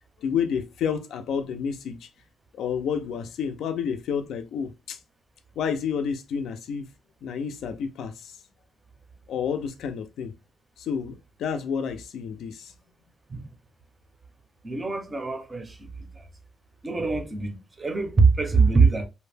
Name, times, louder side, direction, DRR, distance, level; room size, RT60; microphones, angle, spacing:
voice 1, 0.2-2.1 2.6-5.0 5.6-6.9 7.2-8.3 9.3-10.3 10.8-12.7, left 7 dB, 75° left, 0.4 m, -30 dB
voice 2, 14.6-16.3 16.8-19.1, right 4 dB, 20° right, 0.5 m, -23 dB
2.6 x 2.1 x 3.2 m
cardioid pair, 170°, 0 cm